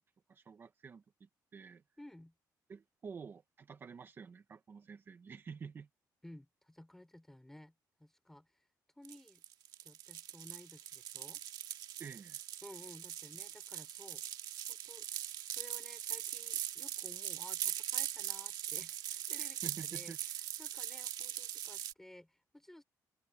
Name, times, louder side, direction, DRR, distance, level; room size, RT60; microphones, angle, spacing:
voice 1, 0.3-1.8 2.7-5.9 12.0-12.4 19.6-20.2, right 6 dB, 30° right, 1.2 m, -49 dB
voice 2, 2.0-2.3 6.2-8.7 9.0-9.4 9.8-11.4 12.6-14.2 14.7-15.1 15.4-22.8, left 1 dB, 5° left, 5.8 m, -56 dB
sound 1, 9.0-21.9, right 11 dB, 90° right, 1.9 m, -41 dB
open air
cardioid pair, 175°, 7 cm